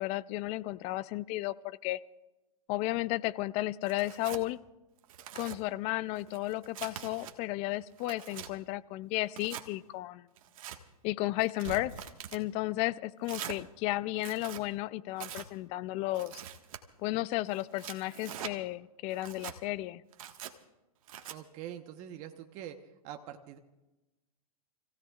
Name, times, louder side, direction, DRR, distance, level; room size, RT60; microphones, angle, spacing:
voice 1, 0.0-2.0 2.7-4.6 5.3-10.3 11.0-16.4 17.0-20.0, left 18 dB, 30° left, 18 dB, 0.5 m, -33 dB
Tearing, 3.9-4.4 5.0-5.6 6.2-7.3 7.8-8.5 9.3-9.7 10.4-10.8 11.4-12.4 13.2-13.6 14.1-14.6 15.2-15.5 16.1-16.8 17.5-18.5 19.1-19.6 20.1-20.5 21.1-21.4, right 10 dB, 60° right, 1.6 m, -43 dB
voice 2, 21.3-22.8 23.0-23.6, right 11 dB, 35° right, 5 dB, 1.1 m, -44 dB
30.0 x 16.5 x 2.4 m, 1.0 s
hypercardioid pair, 125°, 20 cm